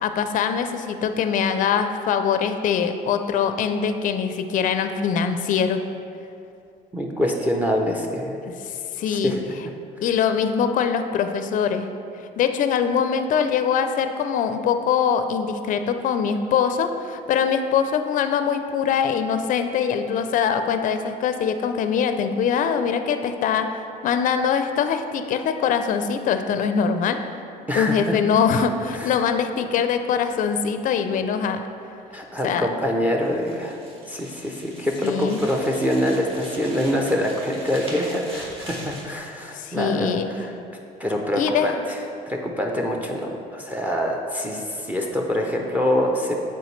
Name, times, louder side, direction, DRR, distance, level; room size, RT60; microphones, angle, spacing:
voice 1, 0.0-5.8 8.6-9.4 10.0-11.9 12.4-27.2 27.7-31.6 32.4-32.7 35.0-35.4 39.5-40.3 41.4-41.8, left 7 dB, 50° left, 8 dB, 0.4 m, -23 dB
voice 2, 6.9-8.5 9.1-9.4 27.7-28.2 28.9-29.1 32.1-33.8 34.1-40.5 41.0-42.0 42.3-46.3, equal, 10° right, 1 dB, 0.5 m, -25 dB
sound 1, 33.2-39.1, right 1 dB, 35° right, 1.4 m, -41 dB
8.0 x 4.4 x 3.2 m, 2.6 s
cardioid pair, 110°, 17 cm